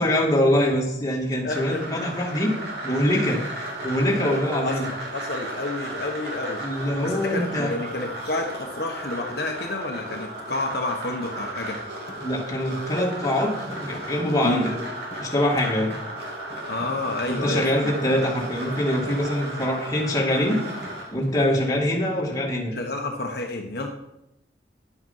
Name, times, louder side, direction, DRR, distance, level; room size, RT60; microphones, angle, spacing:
voice 1, 0.0-2.5 2.8-3.4 3.8-4.9 6.6-7.7 12.2-13.5 13.8-14.7 15.2-15.9 17.3-20.6 21.1-22.7, left 1 dB, 20° left, -2 dB, 2.4 m, -24 dB
voice 2, 1.4-2.0 4.6-6.6 7.0-11.8 14.4-14.6 16.7-17.9 22.7-23.9, left 2 dB, 60° left, 1 dB, 1.3 m, -30 dB
sound 1, 1.5-21.1, right 1 dB, 65° right, 3.0 m, -35 dB
Thump thud, 12.1-12.2 13.7-14.7 15.1-16.1 16.5-17.9 18.5-18.7 19.0-19.4 20.8-21.9, left 1 dB, 40° left, 2.2 m, -44 dB
11.0 x 7.9 x 5.6 m, 0.83 s
head